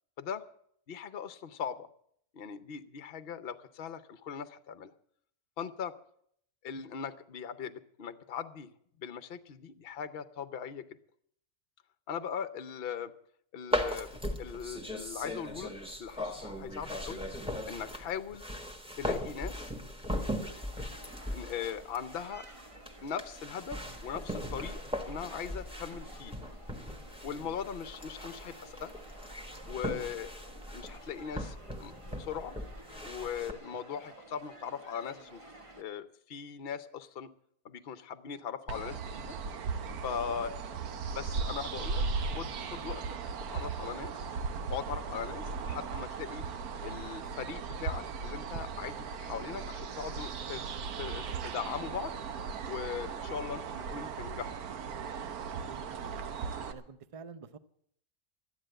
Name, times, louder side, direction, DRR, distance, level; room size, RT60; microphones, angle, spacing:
voice 1, 0.9-1.9 2.3-4.9 5.6-5.9 6.6-8.7 9.0-10.8 12.1-13.1 13.5-14.1 14.4-15.7 16.0-17.2 17.7-18.5 19.0-19.7 21.3-22.5 23.0-26.4 27.2-28.9 29.6-32.6 33.0-35.4 35.8-37.3 37.6-39.4 40.0-40.8 41.1-43.0 43.5-44.3 44.7-46.5 46.8-50.7 51.0-52.1 52.6-54.6, left 7 dB, 50° left, 13 dB, 0.8 m, -40 dB
sound 1, 13.7-33.5, left 1 dB, 5° right, 1.3 m, -39 dB
sound 2, 20.1-35.8, right 2 dB, 25° right, 1.2 m, -53 dB
sound 3, 38.7-56.7, right 5 dB, 85° right, 1.4 m, -37 dB
voice 2, 55.5-56.4 56.7-57.6, right 5 dB, 45° right, 13 dB, 0.4 m, -49 dB
13.0 x 10.0 x 7.6 m, 0.66 s
omnidirectional pair, 1.5 m